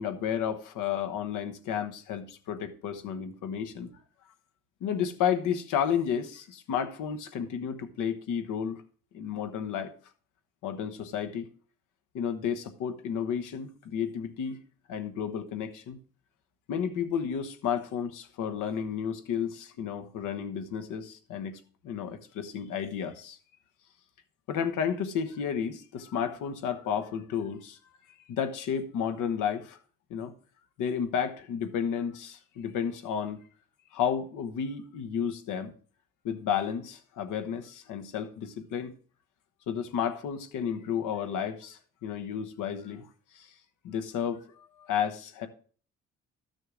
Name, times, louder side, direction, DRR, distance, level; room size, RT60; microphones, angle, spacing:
voice 1, 0.0-3.9 4.8-8.8 9.1-9.9 10.6-11.5 12.1-14.6 14.9-16.0 16.7-23.4 24.5-27.8 28.3-29.8 30.1-30.3 30.8-33.4 33.9-35.7 36.2-38.9 39.7-43.1 43.3-43.5 43.8-45.5, left 8 dB, 85° left, 1.1 m, -32 dB
12.5 x 6.5 x 3.7 m
cardioid pair, 90°, 30 cm